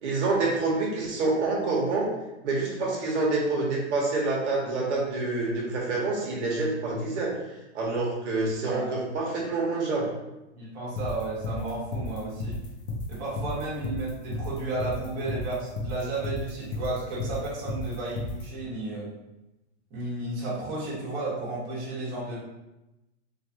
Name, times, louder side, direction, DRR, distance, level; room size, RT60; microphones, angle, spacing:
voice 1, 0.0-2.1 2.4-7.3 7.7-10.1, right 3 dB, 80° right, -3 dB, 1.1 m, -27 dB
voice 2, 8.6-9.0 10.5-12.6 13.1-19.1 19.9-22.4, right 2 dB, 40° right, -6 dB, 1.1 m, -33 dB
sound 1, 11.0-18.4, left 2 dB, 50° left, 0.7 m, -32 dB
3.2 x 2.3 x 2.8 m, 0.96 s
supercardioid pair, 155°, 35 cm